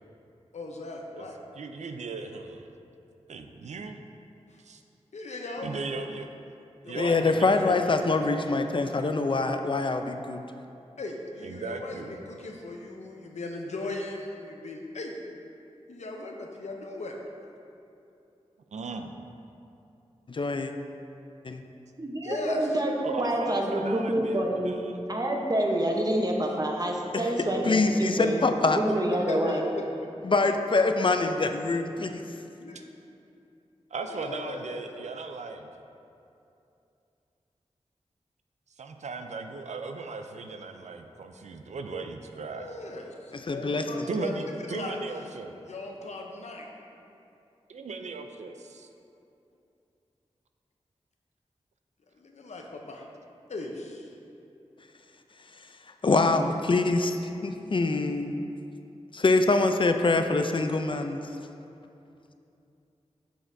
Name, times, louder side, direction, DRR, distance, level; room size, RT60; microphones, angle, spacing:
voice 1, 0.5-1.4 4.5-4.6 5.1-6.2 6.8-7.2 7.6-8.2 11.0-15.1 15.9-17.2 22.2-22.8 29.1-30.3 32.6-32.8 34.0-34.9 42.5-45.0 45.7-46.7 52.2-53.1 53.5-54.1, left 2 dB, 80° left, 1 dB, 0.7 m, -38 dB
voice 2, 1.5-2.7 3.3-4.0 4.6-4.8 5.6-6.3 6.9-7.7 11.4-12.1 18.7-19.1 23.0-25.0 33.9-35.7 38.8-42.8 44.1-45.5 47.7-48.9, right 4 dB, 85° right, 6 dB, 0.4 m, -37 dB
voice 3, 6.9-10.4 20.3-20.7 21.4-21.6 27.1-27.3 27.6-28.8 30.2-32.2 43.3-43.9 56.0-58.4 59.1-61.2, left 3 dB, 45° left, 7 dB, 0.4 m, -24 dB
voice 4, 22.0-24.7 25.1-29.6, right 1 dB, 35° right, 0 dB, 0.9 m, -27 dB
7.6 x 6.3 x 2.7 m, 2.7 s
cardioid pair, 45°, 12 cm